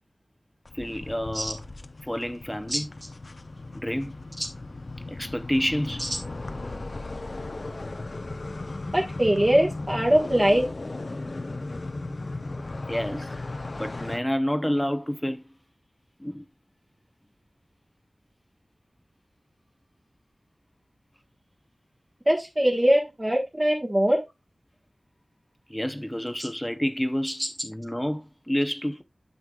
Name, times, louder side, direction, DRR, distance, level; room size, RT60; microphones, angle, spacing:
sound 1, 0.6-14.2, left 2 dB, 55° left, 0.6 m, -36 dB
voice 1, 0.7-1.6 2.0-2.9 3.7-4.1 5.1-6.0 12.9-13.3 13.8-15.4 16.2-16.4 25.7-29.0, equal, 10° left, 0.7 m, -29 dB
voice 2, 8.9-10.7 22.2-24.2 26.4-26.5, right 1 dB, 30° right, 1.3 m, -22 dB
9.5 x 6.4 x 2.3 m
wide cardioid pair, 45°, 0 cm